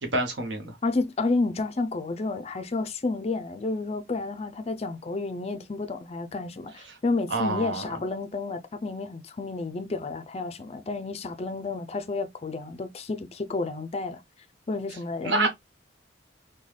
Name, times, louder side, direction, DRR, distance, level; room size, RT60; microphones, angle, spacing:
voice 1, 0.0-0.7 6.9-7.0 7.3-7.8 15.2-15.5, right 2 dB, 65° right, 1.0 m, -27 dB
voice 2, 0.8-14.2 14.7-15.5, left 3 dB, 30° left, 0.4 m, -30 dB
3.8 x 2.2 x 3.2 m
head